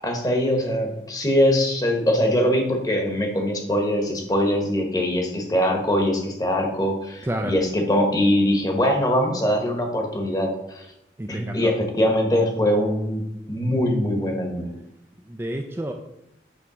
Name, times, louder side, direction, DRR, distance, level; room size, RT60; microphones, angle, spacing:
voice 1, 0.0-10.9 11.3-13.2 13.5-14.7, equal, 20° left, 2 dB, 1.2 m, -22 dB
voice 2, 7.2-7.6 11.2-11.7 15.3-15.9, right 1 dB, 15° right, 3 dB, 0.4 m, -29 dB
8.4 x 3.3 x 6.2 m, 0.86 s
head